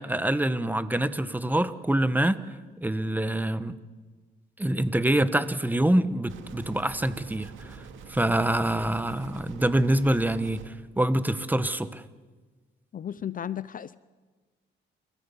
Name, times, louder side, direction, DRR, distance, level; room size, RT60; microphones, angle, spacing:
voice 1, 0.0-2.4 2.8-3.8 4.6-12.0, right 1 dB, 10° right, 1.1 m, -26 dB
sound 1, 6.3-10.7, right 6 dB, 80° right, 2.1 m, -45 dB
voice 2, 12.9-14.0, left 9 dB, 45° left, 0.6 m, -34 dB
30.0 x 14.5 x 7.1 m
cardioid pair, 90°, 20 cm